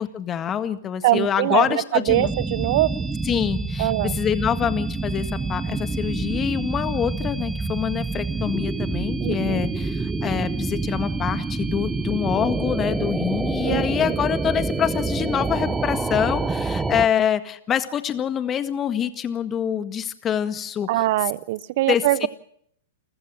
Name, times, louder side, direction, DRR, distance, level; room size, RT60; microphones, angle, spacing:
voice 1, 0.0-2.3 3.3-21.0 21.9-22.3, left 9 dB, 25° left, 10 dB, 1.7 m, -25 dB
voice 2, 1.0-2.9 3.8-4.2 9.2-9.6 13.6-13.9 20.9-22.3, right 17 dB, 55° right, 20 dB, 0.9 m, -22 dB
sound 1, 2.1-17.1, right 3 dB, 10° right, 1.2 m, -27 dB
29.0 x 14.5 x 7.5 m, 0.70 s
hypercardioid pair, 110°, 0 cm